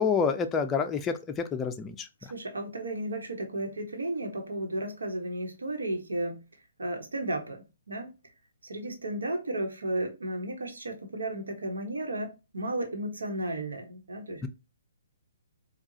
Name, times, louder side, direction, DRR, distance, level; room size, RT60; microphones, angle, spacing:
voice 1, 0.0-2.3 14.4-14.5, left 6 dB, 15° left, 0.4 m, -28 dB
voice 2, 2.2-6.4 6.8-8.1 8.6-14.4, right 1 dB, 85° right, 1.1 m, -34 dB
4.6 x 2.3 x 2.8 m
hypercardioid pair, 140°, 0 cm